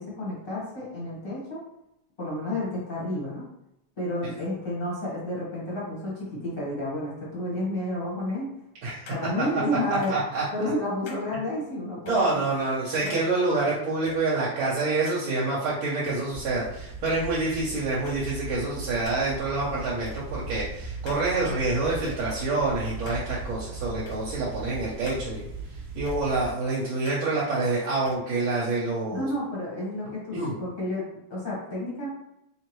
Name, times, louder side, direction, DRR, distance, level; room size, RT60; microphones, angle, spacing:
voice 1, 0.0-1.6 2.2-3.5 4.0-8.5 9.1-10.2 10.5-12.5 13.0-13.2 29.1-32.1, left 1 dB, 35° left, -6 dB, 1.1 m, -31 dB
voice 2, 8.8-9.4 9.9-10.4 12.1-25.5 25.9-29.3 30.3-30.5, right 3 dB, 80° right, -7 dB, 1.6 m, -27 dB
sound 1, 9.1-9.2 9.9-10.2 11.1-11.2 12.1-12.2 13.1-13.3 14.1-14.2 15.1-15.2 16.1-16.2 17.1-17.6 18.1-18.2 19.1-19.3 20.1-20.2 21.1-21.2 22.1-22.2 23.1-23.3 24.1-24.2 25.1-25.2 26.1-26.2 27.1-27.3 28.1-28.2, left 4 dB, 65° left, 1.2 m, -42 dB
sound 2, 16.3-26.5, right 2 dB, 60° right, 1.2 m, -38 dB
3.8 x 3.2 x 3.0 m, 0.83 s
omnidirectional pair, 2.2 m